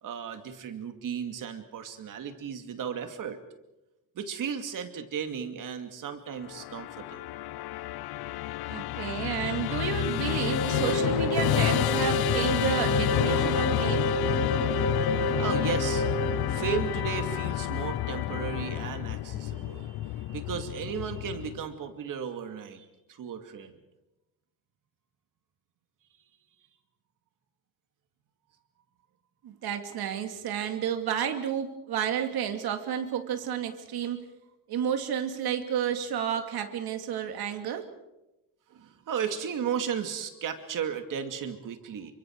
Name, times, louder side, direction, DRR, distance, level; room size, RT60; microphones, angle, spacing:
voice 1, 0.0-3.4 4.2-7.2 15.4-16.0 16.5-23.8 38.7-42.1, right 7 dB, 60° right, 7 dB, 2.4 m, -35 dB
Musical instrument, 6.4-21.7, left 15 dB, 85° left, 0.7 m, -30 dB
voice 2, 8.7-14.1 29.4-34.3 34.7-37.9, right 8 dB, 85° right, 6 dB, 2.6 m, -31 dB
sound 1, 10.1-17.4, right 1 dB, 45° left, 5.3 m, -30 dB
29.0 x 24.5 x 4.8 m, 0.95 s
cardioid pair, 175°, 37 cm